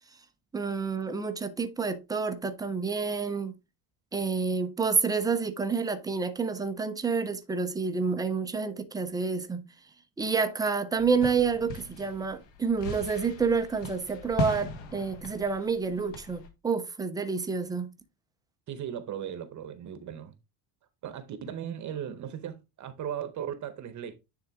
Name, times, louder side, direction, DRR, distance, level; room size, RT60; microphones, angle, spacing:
voice 1, 0.5-3.5 4.1-9.6 10.2-17.9, right 5 dB, 10° right, 0.3 m, -29 dB
sound 1, 11.0-16.5, left 2 dB, 60° left, 1.6 m, -38 dB
voice 2, 18.7-20.3 21.0-24.2, right 9 dB, 40° right, 0.8 m, -37 dB
9.8 x 3.7 x 3.5 m
cardioid pair, 160°, 48 cm